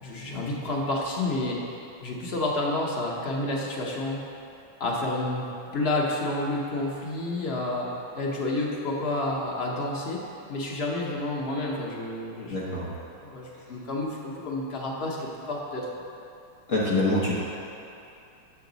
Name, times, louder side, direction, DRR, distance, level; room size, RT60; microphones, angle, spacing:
voice 1, 0.0-1.6 2.0-4.2 4.8-5.5 5.7-7.9 8.1-10.2 10.5-12.6 13.2-16.0, left 2 dB, 80° left, -3 dB, 0.5 m, -29 dB
voice 2, 12.5-12.9 16.7-17.4, left 2 dB, 45° left, -7 dB, 1.2 m, -25 dB
8.7 x 6.1 x 3.9 m, 2.7 s
omnidirectional pair, 2.4 m